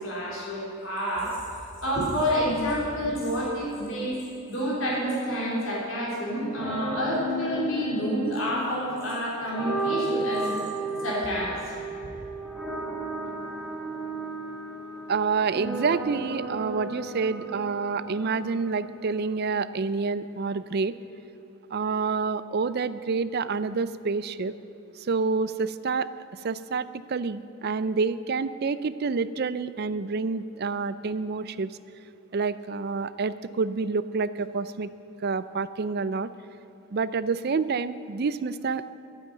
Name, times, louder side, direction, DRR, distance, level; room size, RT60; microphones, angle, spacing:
voice 1, 0.0-4.2 4.5-10.7 11.0-11.7, equal, 65° left, -5 dB, 3.8 m, -29 dB
sound 1, 6.4-19.4, right 2 dB, ahead, 2.1 m, -34 dB
voice 2, 15.1-20.9 21.7-24.5 25.0-31.7 32.3-34.9 35.2-36.3 36.9-39.0, right 4 dB, 45° right, 14 dB, 0.4 m, -28 dB
11.5 x 9.4 x 9.2 m, 3.0 s
head